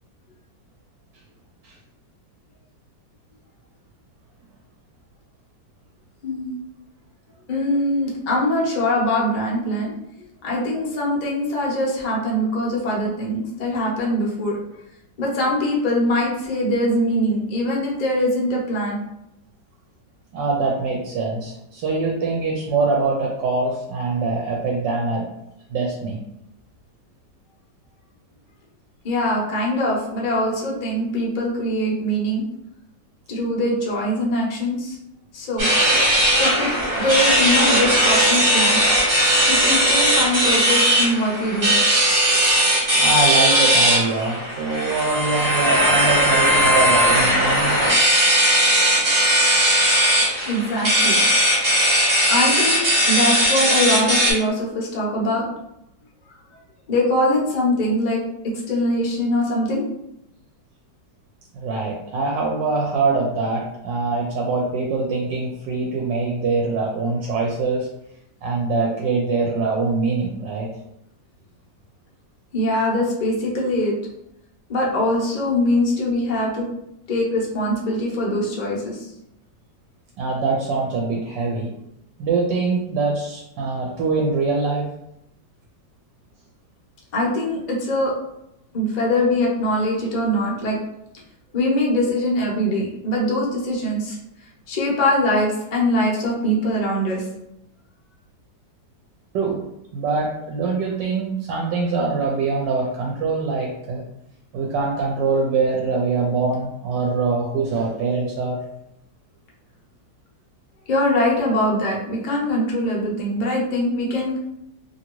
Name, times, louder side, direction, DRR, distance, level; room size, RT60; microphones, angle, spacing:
voice 1, 6.2-6.5 7.5-9.9 10.4-14.5 15.2-19.0 29.0-32.4 33.3-35.0 35.3-35.7 36.4-38.8 39.5-41.7 50.4-51.2 52.3-52.8 53.1-55.5 56.9-59.8 72.5-73.9 74.7-76.7 77.1-79.1 87.1-88.1 88.7-90.8 91.5-94.2 94.7-97.2 110.9-114.4, left 1 dB, 80° left, -3 dB, 0.3 m, -22 dB
voice 2, 20.3-25.3 25.7-26.2 42.9-47.8 61.5-67.9 68.4-70.7 80.2-81.7 82.2-84.9 99.3-99.6 99.9-104.0 104.5-108.6, right 3 dB, 75° right, -1 dB, 1.2 m, -23 dB
sound 1, 35.6-54.3, equal, 30° right, 1.0 m, -18 dB
2.7 x 2.7 x 2.9 m, 0.82 s
omnidirectional pair, 2.0 m